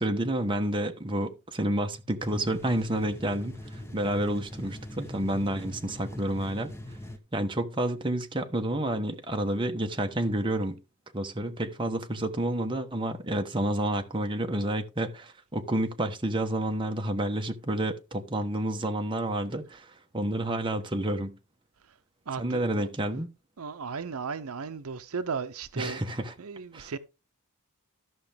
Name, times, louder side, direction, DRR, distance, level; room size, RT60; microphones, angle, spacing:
voice 1, 0.0-6.7 7.3-10.8 11.1-21.3 22.4-23.3 25.8-26.3 26.7-26.9, right 1 dB, 25° right, 1.1 m, -29 dB
sound 1, 2.2-7.2, left 1 dB, 10° left, 1.0 m, -41 dB
voice 2, 22.3-22.9 23.6-26.0 26.4-27.0, right 5 dB, 70° right, 0.7 m, -35 dB
14.0 x 5.9 x 3.5 m
head